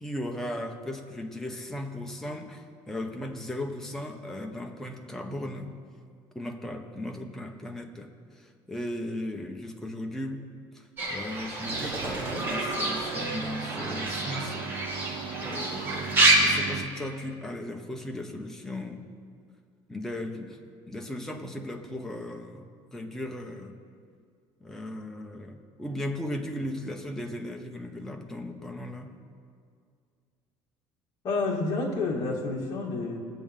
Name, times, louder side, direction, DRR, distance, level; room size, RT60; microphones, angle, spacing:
voice 1, 0.0-5.7 6.3-10.5 10.7-19.1 19.9-20.6 20.9-23.8 24.6-29.2, left 1 dB, 5° left, 2 dB, 0.8 m, -37 dB
Fowl / Bird, 11.0-16.3, right 2 dB, 25° right, 2.6 m, -28 dB
sound 1, 11.6-16.8, right 8 dB, 70° right, 0.8 m, -38 dB
voice 2, 31.2-33.2, left 3 dB, 40° left, -3 dB, 2.3 m, -29 dB
20.5 x 7.6 x 3.7 m, 2.2 s
cardioid pair, 170°, 10 cm